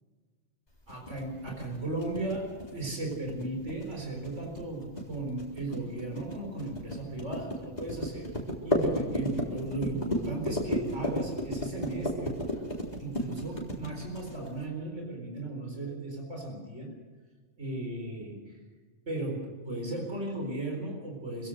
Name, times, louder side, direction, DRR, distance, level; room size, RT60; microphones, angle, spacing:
sound 1, 0.9-14.6, left 1 dB, 35° left, 4.0 m, -33 dB
voice 1, 0.9-8.4 8.6-12.6 13.0-16.9 17.6-18.6 19.1-21.5, right 2 dB, 80° right, 1 dB, 4.6 m, -36 dB
26.0 x 16.5 x 6.5 m, 1.5 s
omnidirectional pair, 1.2 m